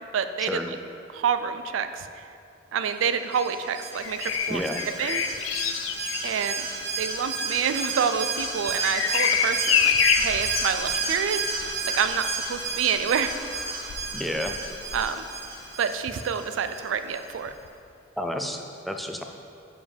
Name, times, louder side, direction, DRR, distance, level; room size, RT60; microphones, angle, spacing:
voice 1, 0.1-0.8 1.1-2.2 2.7-4.7 5.0-5.2 6.2-6.7 7.0-11.5 11.8-13.3 14.9-15.3 15.8-17.5, right 7 dB, 80° right, 10 dB, 0.4 m, -28 dB
Alarm, 3.3-16.8 17.1-17.2, right 3 dB, 60° right, 0.9 m, -32 dB
Bird vocalization bird call bird song, 3.9-15.7 17.5-17.7, left 8 dB, 80° left, 0.3 m, -29 dB
voice 2, 4.5-4.8 14.1-14.6 18.2-19.2, left 1 dB, ahead, 3 dB, 0.3 m, -30 dB
7.3 x 4.9 x 3.4 m, 2.5 s
head